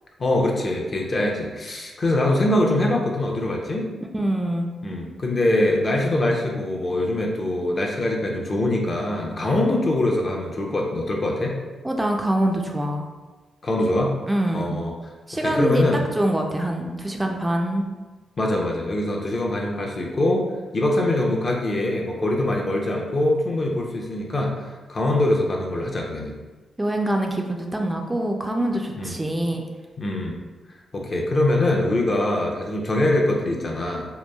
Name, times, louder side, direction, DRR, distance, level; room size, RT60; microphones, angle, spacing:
voice 1, 0.2-3.9 4.8-11.6 13.6-14.2 14.5-14.9 15.4-16.0 18.4-20.5 20.7-26.4 29.0-29.1 30.0-30.4 30.9-34.1, left 1 dB, 45° left, 0 dB, 0.5 m, -23 dB
voice 2, 4.1-4.7 11.8-13.1 14.3-14.8 15.3-15.8 16.2-17.8 26.8-29.6, right 1 dB, 15° right, 2 dB, 0.3 m, -24 dB
2.9 x 2.3 x 2.2 m, 1.3 s
cardioid pair, 60°, 0 cm